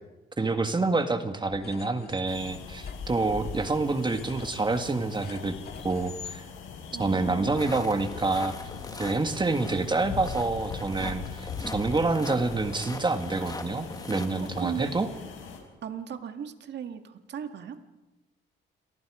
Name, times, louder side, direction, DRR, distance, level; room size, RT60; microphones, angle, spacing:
voice 1, 0.4-5.6 5.8-6.4 7.0-8.5 9.0-15.1, right 3 dB, 25° right, 7 dB, 1.9 m, -27 dB
sound 1, 1.5-6.4, left 6 dB, 55° left, 2.0 m, -44 dB
sound 2, 2.3-15.6, left 6 dB, 85° left, 5.5 m, -41 dB
voice 2, 6.9-7.7 14.4-15.0 15.8-17.8, right 8 dB, 60° right, 7 dB, 2.0 m, -37 dB
sound 3, 7.6-14.5, left 2 dB, 20° left, 1.9 m, -42 dB
29.0 x 22.5 x 5.0 m, 1.1 s
cardioid pair, 90°, 20 cm